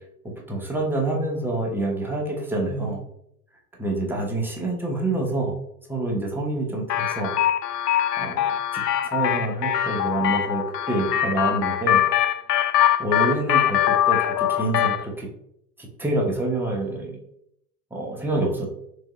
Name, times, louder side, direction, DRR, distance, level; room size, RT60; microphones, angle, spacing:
voice 1, 0.2-3.0 3.8-5.5 5.9-7.3 8.2-12.0 13.0-15.3 15.8-17.1 17.9-18.7, right 2 dB, 5° right, -1 dB, 0.7 m, -27 dB
sound 1, 6.9-15.0, left 11 dB, 80° left, 0.5 m, -22 dB
3.6 x 3.1 x 3.0 m, 0.72 s
figure-of-eight pair, 90°, 48 cm